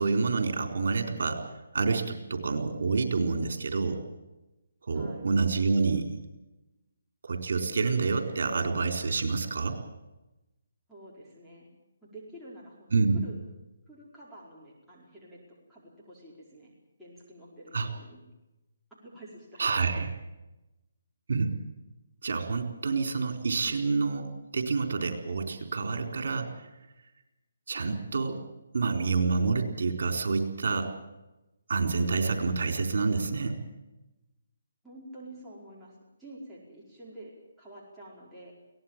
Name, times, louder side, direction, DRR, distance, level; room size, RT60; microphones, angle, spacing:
voice 1, 0.0-1.4 1.7-4.0 4.8-6.1 7.2-9.8 12.9-13.2 17.7-17.9 19.6-20.1 21.3-21.5 22.2-26.7 27.7-28.4 28.7-30.9 31.7-33.6, right 4 dB, 65° right, 5 dB, 4.1 m, -28 dB
voice 2, 4.9-5.3 10.9-11.7 12.0-13.3 13.9-15.4 15.7-16.7 17.0-18.2 18.9-20.1 34.8-38.5, right 1 dB, ahead, -9 dB, 4.9 m, -49 dB
22.5 x 18.0 x 7.5 m, 1.0 s
hypercardioid pair, 155°, 0 cm